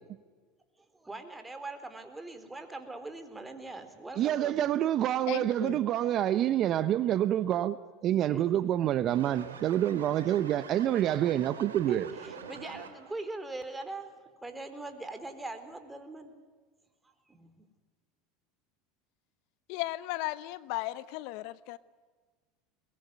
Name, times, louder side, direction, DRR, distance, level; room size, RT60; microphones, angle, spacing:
voice 1, 0.9-4.7 8.3-8.6 11.9-16.3 17.3-17.7, right 2 dB, 10° right, 4.2 m, -41 dB
voice 2, 4.2-7.8 8.0-12.1, right 12 dB, 45° right, 1.0 m, -27 dB
voice 3, 5.3-5.8 19.7-21.8, left 18 dB, 65° left, 0.9 m, -36 dB
sound 1, 9.1-13.2, right 7 dB, 90° right, 2.8 m, -45 dB
23.0 x 21.5 x 9.6 m
hypercardioid pair, 90°, 0 cm